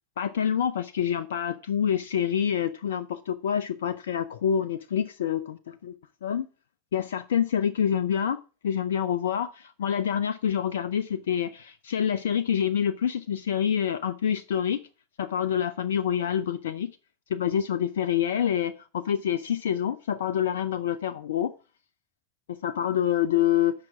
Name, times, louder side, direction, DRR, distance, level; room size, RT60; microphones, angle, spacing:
voice 1, 0.2-5.9 6.2-6.5 6.9-14.8 15.2-16.9 17.3-21.5 22.6-23.7, left 9 dB, 75° left, 0.6 m, -27 dB
7.8 x 5.9 x 7.0 m
figure-of-eight pair, 85°, 0 cm